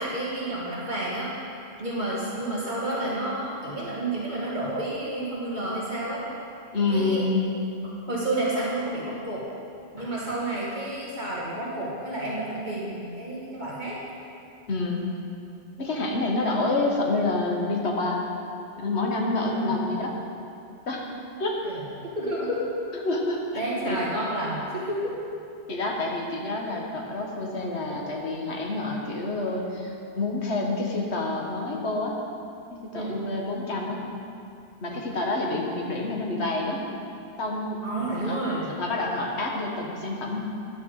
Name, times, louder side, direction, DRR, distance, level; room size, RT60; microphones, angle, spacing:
voice 1, 0.0-1.3 1.8-6.3 6.9-7.2 8.1-9.4 9.9-14.0 19.5-20.0 21.6-22.6 23.5-25.1 32.9-33.2 34.8-35.0 37.8-38.8, right 1 dB, 45° right, -6 dB, 2.0 m, -30 dB
voice 2, 6.7-7.4 14.7-15.1 15.8-18.2 18.8-20.1 20.9-21.1 21.4-21.6 23.0-24.0 25.7-32.2 32.7-34.0 34.8-36.8 37.4-37.8 38.3-38.4 38.8-40.4, left 2 dB, 70° left, 0 dB, 1.6 m, -28 dB
10.5 x 6.4 x 7.3 m, 2.6 s
omnidirectional pair, 1.2 m